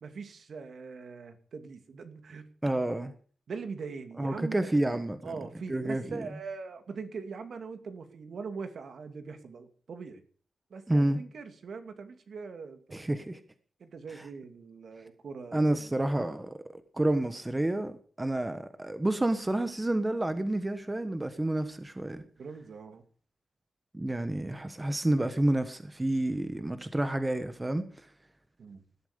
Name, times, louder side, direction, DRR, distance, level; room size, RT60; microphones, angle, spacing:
voice 1, 0.0-2.4 3.5-4.7 5.2-10.2 10.7-13.0 13.8-16.0 22.4-23.0 28.6-28.8, right 5 dB, 60° right, 2.5 m, -42 dB
voice 2, 2.6-3.1 4.2-5.3 5.7-6.3 10.9-11.2 12.9-13.4 14.1-14.2 15.5-16.6 16.9-22.2 23.9-27.8, right 1 dB, 15° right, 1.3 m, -29 dB
19.0 x 12.5 x 5.2 m
wide cardioid pair, 150°, 0 cm